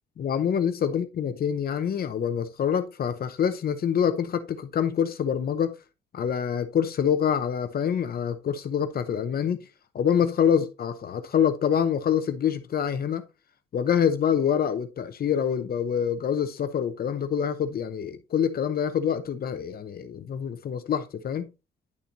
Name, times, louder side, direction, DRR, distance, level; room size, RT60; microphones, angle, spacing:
voice 1, 0.2-5.8 6.1-9.6 9.9-13.2 13.7-21.5, left 8 dB, 50° left, 0.8 m, -26 dB
11.0 x 4.2 x 2.7 m
cardioid pair, 90°, 20 cm